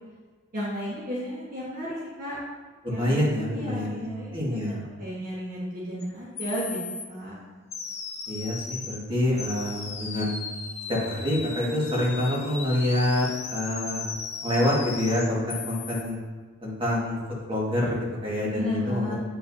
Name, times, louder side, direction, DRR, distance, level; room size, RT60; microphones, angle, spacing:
voice 1, 0.5-2.4 2.9-3.2 3.5-4.6 5.0-6.8 7.1-7.4 18.5-19.1, equal, 40° right, -7 dB, 1.4 m, -33 dB
voice 2, 2.8-4.0 4.3-4.8 8.3-10.3 10.9-14.0 14.4-16.2 16.6-17.2 17.5-19.1, left 1 dB, 25° right, -5 dB, 1.8 m, -26 dB
sound 1, 6.0-6.1 6.4-7.0 7.7-9.0 9.4-16.0, left 5 dB, 30° left, 0.7 m, -37 dB
8.6 x 5.4 x 2.7 m, 1.5 s
head